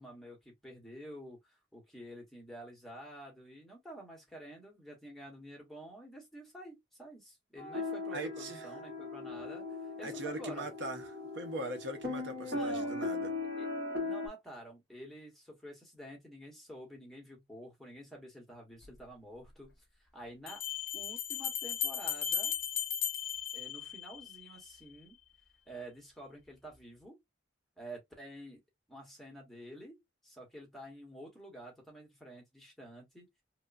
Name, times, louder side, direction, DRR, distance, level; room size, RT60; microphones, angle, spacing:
voice 1, 0.0-10.7 12.5-12.9 13.6-13.7 14.0-19.7 20.0-20.6 20.9-22.6 23.5-25.2 25.7-27.2 27.8-28.6 28.9-33.3, right 1 dB, ahead, 0.9 m, -49 dB
sound 1, 7.6-14.3, left 2 dB, 55° right, 1.2 m, -38 dB
voice 2, 8.1-8.7 10.0-11.1 11.3-13.3, right 1 dB, 75° right, 0.7 m, -40 dB
Bell, 18.8-18.9 20.5-24.4, left 8 dB, 50° left, 0.8 m, -36 dB
3.0 x 2.2 x 2.4 m
head